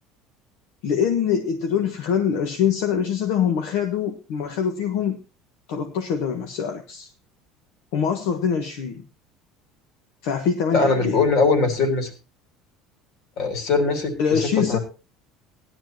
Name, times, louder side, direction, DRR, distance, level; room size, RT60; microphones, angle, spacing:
voice 1, 0.8-5.2 5.7-7.1 7.9-9.0 10.2-11.2 14.2-14.8, left 7 dB, 65° left, 5 dB, 1.3 m, -24 dB
voice 2, 10.7-12.1 13.4-14.4 14.7-14.8, left 4 dB, 45° left, 6 dB, 3.0 m, -21 dB
17.0 x 11.5 x 3.0 m, 0.30 s
cardioid pair, 170°, 0 cm